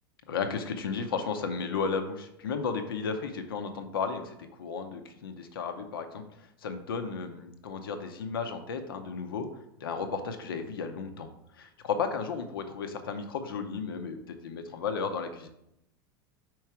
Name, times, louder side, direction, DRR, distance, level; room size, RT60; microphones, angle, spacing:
voice 1, 0.3-6.2 6.6-9.5 9.8-11.3 11.6-14.2 14.4-15.5, left 5 dB, 85° left, 7 dB, 0.6 m, -34 dB
4.6 x 4.6 x 4.6 m, 0.82 s
hypercardioid pair, 95°, 12 cm